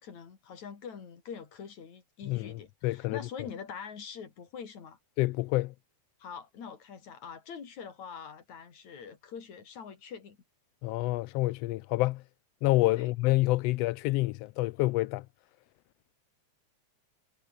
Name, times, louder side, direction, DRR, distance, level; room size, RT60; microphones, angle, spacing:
voice 1, 0.0-5.0 6.2-10.4 13.0-13.1, left 6 dB, 70° left, 4.6 m, -44 dB
voice 2, 2.3-3.2 5.2-5.7 10.8-12.2 12.6-15.2, left 19 dB, 90° left, 1.4 m, -28 dB
omnidirectional pair, 3.3 m